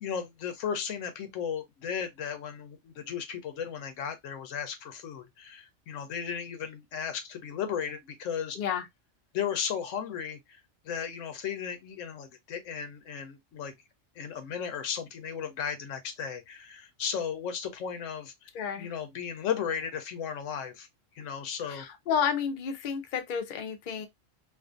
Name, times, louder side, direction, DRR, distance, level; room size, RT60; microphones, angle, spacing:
voice 1, 0.0-8.6 9.3-10.6 10.8-13.7 14.2-18.3 18.8-20.9 21.2-21.9, left 7 dB, 80° left, 1.0 m, -35 dB
voice 2, 8.5-8.9 18.5-18.9 21.6-24.1, left 7 dB, 55° left, 0.6 m, -31 dB
2.5 x 2.4 x 2.4 m
omnidirectional pair, 1.3 m